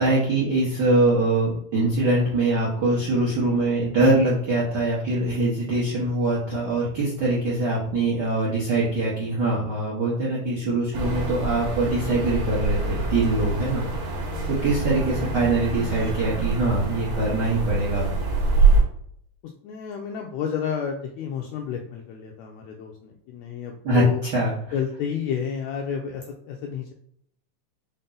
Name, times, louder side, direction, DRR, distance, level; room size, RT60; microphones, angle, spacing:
voice 1, 0.0-13.8 14.5-18.0 23.8-24.5, right 2 dB, 70° right, -6 dB, 1.0 m, -23 dB
sound 1, 10.9-18.8, right 3 dB, 55° right, 1.5 m, -25 dB
voice 2, 19.6-24.2 24.7-26.9, left 7 dB, 80° left, 1 dB, 1.6 m, -31 dB
5.4 x 2.0 x 3.8 m, 0.66 s
omnidirectional pair, 3.4 m